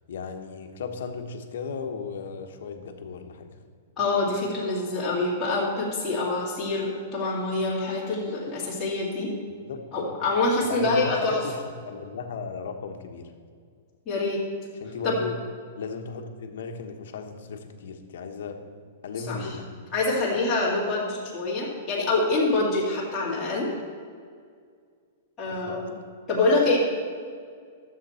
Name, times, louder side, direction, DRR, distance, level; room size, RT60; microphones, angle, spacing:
voice 1, 0.1-3.6 9.7-10.2 10.6-13.3 14.8-15.3 15.8-18.6 19.0-19.7 25.5-25.8, left 5 dB, 65° left, 5 dB, 1.2 m, -36 dB
voice 2, 4.0-9.3 9.9-11.4 14.1-14.4 15.0-15.2 19.2-19.6 19.9-23.7 25.4-25.9 26.3-26.8, left 2 dB, 15° left, -7 dB, 2.4 m, -25 dB
13.0 x 7.5 x 4.4 m, 2.1 s
supercardioid pair, 175°, 0 cm